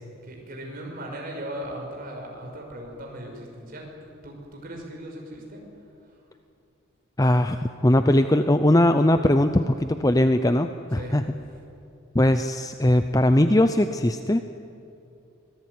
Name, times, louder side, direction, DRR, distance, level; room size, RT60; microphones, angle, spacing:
voice 1, 0.2-4.0 4.2-6.2 10.9-11.2, right 1 dB, 45° right, 0 dB, 5.7 m, -38 dB
voice 2, 7.2-11.2 12.1-14.5, left 1 dB, 15° left, 9 dB, 0.6 m, -20 dB
25.0 x 18.5 x 9.5 m, 2.7 s
head